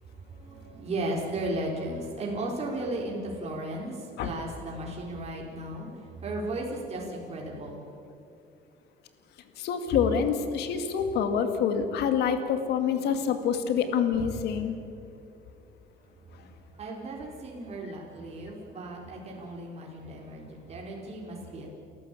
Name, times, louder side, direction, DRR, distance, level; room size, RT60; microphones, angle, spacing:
voice 1, 0.0-7.9 16.0-21.7, right 1 dB, 40° right, -2 dB, 4.3 m, -35 dB
voice 2, 9.6-14.8, left 7 dB, 80° left, 8 dB, 2.3 m, -26 dB
29.5 x 14.0 x 8.4 m, 2.6 s
cardioid pair, 110°, 17 cm